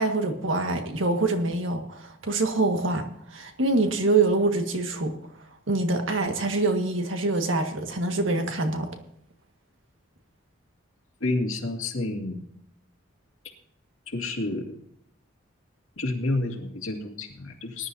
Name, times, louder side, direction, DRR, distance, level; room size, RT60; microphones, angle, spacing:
voice 1, 0.0-5.2 5.7-8.9, right 2 dB, 70° right, 5 dB, 1.8 m, -25 dB
voice 2, 11.2-12.4 14.1-14.8 16.0-17.9, left 2 dB, 85° left, 1 dB, 2.2 m, -29 dB
20.0 x 11.0 x 2.8 m, 0.72 s
head